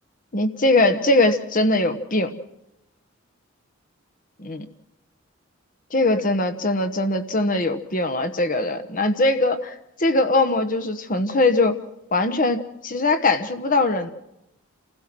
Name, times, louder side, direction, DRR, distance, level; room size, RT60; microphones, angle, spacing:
voice 1, 0.3-2.3 4.4-4.7 5.9-9.7 10.0-11.8 12.1-14.1, left 2 dB, 40° left, 8 dB, 1.2 m, -21 dB
29.5 x 16.0 x 6.2 m, 0.90 s
head